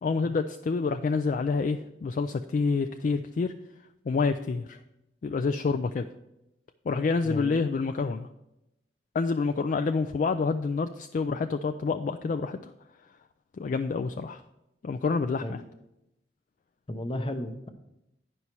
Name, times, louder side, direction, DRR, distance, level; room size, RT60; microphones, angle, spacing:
voice 1, 0.0-3.5 4.1-4.8 5.2-6.1 6.9-8.3 9.1-12.7 13.6-14.4 14.8-15.6, left 4 dB, 45° left, 7 dB, 0.3 m, -28 dB
voice 2, 7.2-7.6 15.4-15.6 16.9-17.7, left 1 dB, 30° left, 8 dB, 0.7 m, -34 dB
9.7 x 5.5 x 4.5 m, 0.89 s
head